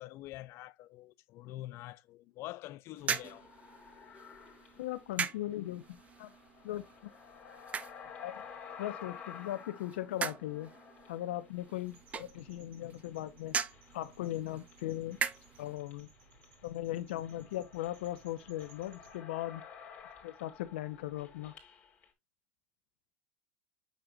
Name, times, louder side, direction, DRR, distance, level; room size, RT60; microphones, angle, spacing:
voice 1, 0.0-3.5, left 16 dB, 45° left, 0.5 m, -46 dB
sound 1, 2.9-15.8, right 6 dB, 25° right, 0.5 m, -41 dB
sound 2, 3.0-12.6 12.8-22.1, left 7 dB, 25° left, 2.6 m, -53 dB
voice 2, 4.8-6.3 6.6-7.1 8.2-8.3 8.8-10.7 11.1-13.5 13.9-15.2 15.6-16.1 16.6-19.6 20.2-21.5, left 14 dB, 80° left, 0.8 m, -38 dB
sound 3, 11.9-19.2, right 4 dB, 65° right, 3.3 m, -62 dB
6.7 x 6.2 x 2.4 m
supercardioid pair, 115°, 6 cm